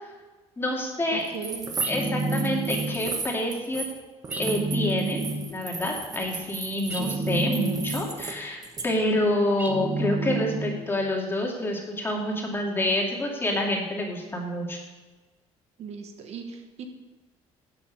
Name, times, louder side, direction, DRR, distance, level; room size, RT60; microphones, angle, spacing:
voice 1, 0.6-1.3 1.9-3.8 4.4-5.2 5.5-14.8, left 1 dB, 20° left, -1 dB, 2.4 m, -27 dB
voice 2, 1.1-1.7 6.9-7.2 15.8-16.9, right 6 dB, 60° right, 5 dB, 1.3 m, -38 dB
sound 1, 1.2-4.0 4.2-8.3 8.6-8.8, right 4 dB, 30° right, 1.4 m, -35 dB
sound 2, 1.8-3.2 4.3-5.6 6.9-8.3 9.6-11.0, right 2 dB, 15° right, 1.1 m, -29 dB
11.0 x 7.5 x 5.3 m, 1.3 s
cardioid pair, 120°, 12 cm